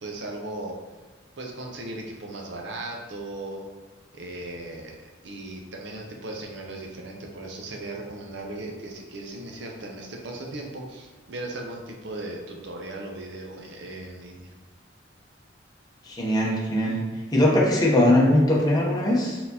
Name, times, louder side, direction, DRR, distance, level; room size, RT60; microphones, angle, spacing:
voice 1, 0.0-0.8 1.4-3.7 4.1-4.9 5.2-14.5, right 2 dB, 65° right, 1 dB, 0.6 m, -37 dB
voice 2, 16.0-17.0 17.3-19.4, left 1 dB, 20° left, -4 dB, 0.8 m, -20 dB
4.1 x 3.8 x 2.8 m, 1.3 s
head